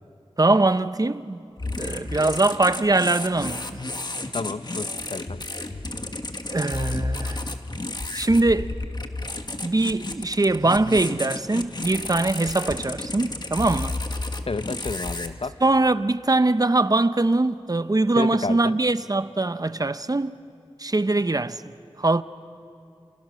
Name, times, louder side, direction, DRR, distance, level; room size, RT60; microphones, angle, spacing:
voice 1, 0.4-1.4 1.8-3.8 6.5-7.4 8.1-8.7 9.6-14.0 15.6-20.4 20.8-21.6 22.0-22.2, right 2 dB, 35° right, 0.7 m, -22 dB
sound 1, 1.6-15.3, left 2 dB, 45° left, 1.5 m, -32 dB
voice 2, 4.3-5.5 14.4-15.6 18.1-18.8, left 3 dB, 65° left, 0.8 m, -31 dB
29.5 x 28.5 x 6.4 m
wide cardioid pair, 60°, 10 cm